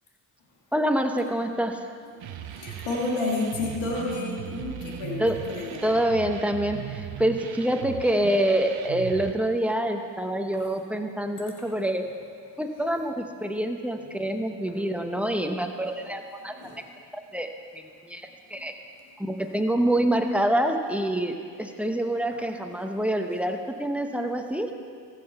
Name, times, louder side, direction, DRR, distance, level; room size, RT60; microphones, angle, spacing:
voice 1, 0.7-1.8 5.2-5.4 5.8-12.0 12.6-16.5 17.1-17.5 17.7-18.7 19.2-24.7, right 1 dB, 5° right, 4 dB, 1.0 m, -26 dB
voice 2, 2.2-5.2 5.5-5.9 16.6-16.8 18.5-18.6 23.0-23.1, left 2 dB, 85° left, -3 dB, 1.8 m, -31 dB
sound 1, 2.2-9.3, right 10 dB, 75° right, 0.7 m, -38 dB
15.0 x 6.0 x 4.4 m, 2.2 s
supercardioid pair, 45°, 47 cm